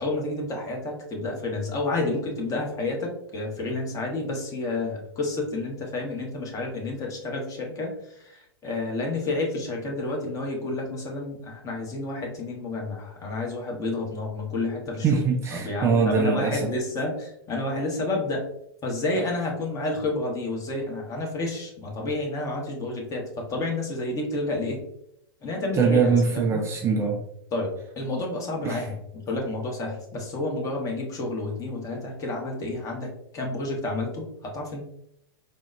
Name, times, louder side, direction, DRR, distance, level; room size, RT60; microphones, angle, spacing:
voice 1, 0.0-15.1 15.5-18.4 18.8-24.8 25.4-26.6 27.5-34.8, left 2 dB, 25° left, 0 dB, 0.9 m, -30 dB
voice 2, 15.0-16.6 25.8-27.2 28.6-28.8, right 5 dB, 20° right, 1 dB, 0.4 m, -22 dB
3.7 x 2.1 x 2.4 m, 0.76 s
hypercardioid pair, 115°, 13 cm